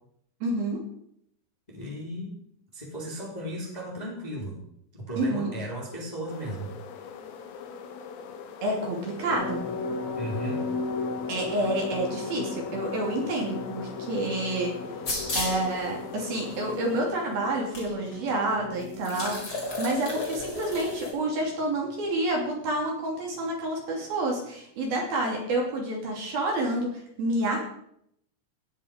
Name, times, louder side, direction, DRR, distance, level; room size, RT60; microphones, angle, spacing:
voice 1, 0.4-0.8 5.2-5.5 8.6-9.6 11.3-14.7 15.3-27.6, right 1 dB, 50° right, -1 dB, 4.4 m, -29 dB
voice 2, 1.7-2.3 2.7-4.6 4.9-6.7 10.1-10.6, equal, 10° left, -3 dB, 2.9 m, -35 dB
sound 1, 6.3-17.1, left 6 dB, 90° left, 4.2 m, -43 dB
sound 2, 9.3-23.4 23.7-23.8 24.1-24.2, left 3 dB, 70° left, 3.9 m, -37 dB
sound 3, 15.0-15.7 16.5-16.6 17.7-17.8 18.1-18.2 18.9-21.1, left 2 dB, 25° left, 4.9 m, -32 dB
17.5 x 10.0 x 5.3 m, 0.72 s
omnidirectional pair, 5.7 m